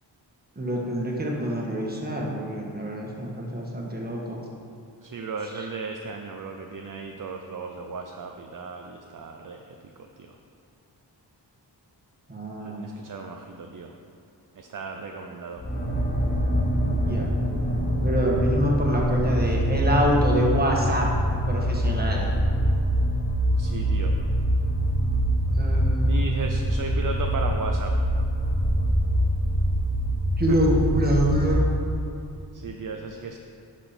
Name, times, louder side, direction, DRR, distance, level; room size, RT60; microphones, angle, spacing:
voice 1, 0.6-4.4 5.5-5.7 12.3-12.8 17.0-17.3 18.0-21.1 21.5-22.3 25.6-26.3 30.4-31.6, equal, 20° right, -2 dB, 1.6 m, -26 dB
voice 2, 5.0-9.6 10.2-10.3 12.6-13.9 14.6-15.6 23.6-24.1 26.1-27.9 30.5-30.6 32.5-33.4, right 4 dB, 50° right, 3 dB, 0.6 m, -35 dB
sound 1, 15.6-31.8, equal, 25° left, 1.4 m, -24 dB
11.0 x 6.2 x 4.3 m, 2.6 s
wide cardioid pair, 100°, 42 cm